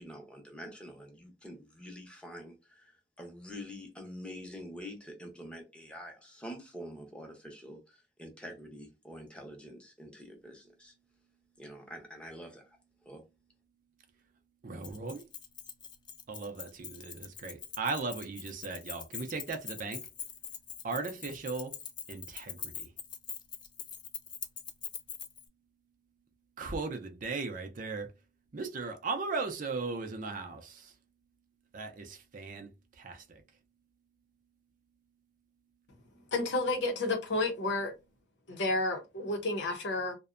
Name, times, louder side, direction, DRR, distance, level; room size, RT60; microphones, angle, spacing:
voice 1, 0.0-2.9 3.2-10.9 11.6-12.8 13.0-13.2, equal, 5° left, 0.7 m, -46 dB
voice 2, 14.6-15.2 16.3-20.0 20.8-21.7 22.1-22.9 26.6-28.1 28.5-30.9 31.7-32.7 33.0-33.4, right 4 dB, 50° right, 0.5 m, -37 dB
Keys jangling, 14.8-25.5, left 8 dB, 25° left, 0.3 m, -43 dB
voice 3, 36.3-37.9 38.5-40.1, left 2 dB, 75° left, 0.7 m, -31 dB
2.6 x 2.1 x 2.4 m
head